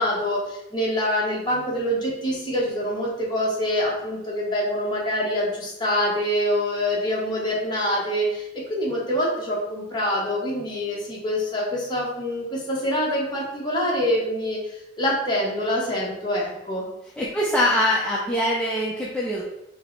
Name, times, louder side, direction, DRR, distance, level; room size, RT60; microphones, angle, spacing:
voice 1, 0.0-16.9, equal, 25° left, -4 dB, 1.1 m, -25 dB
voice 2, 17.2-19.4, left 1 dB, 5° left, -6 dB, 0.5 m, -23 dB
5.1 x 2.1 x 4.4 m, 0.90 s
head